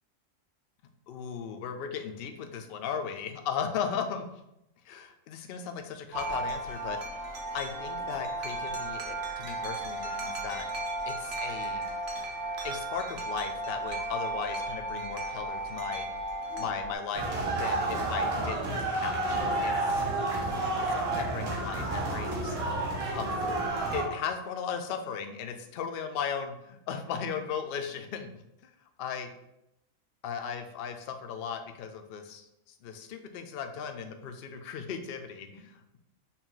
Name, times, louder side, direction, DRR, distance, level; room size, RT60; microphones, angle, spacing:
voice 1, 1.1-4.3 4.8-10.7 11.1-11.8 12.6-16.1 16.6-17.2 17.6-20.0 20.9-23.6 23.9-28.3 28.6-28.7 29.0-29.3 30.2-36.0, left 7 dB, 70° left, 6 dB, 0.5 m, -37 dB
Wind chime, 6.1-17.0, right 2 dB, 55° right, 0.9 m, -35 dB
sound 1, 17.1-24.1, right 2 dB, 85° right, 1.4 m, -30 dB
5.6 x 2.3 x 3.8 m, 0.85 s
omnidirectional pair, 1.5 m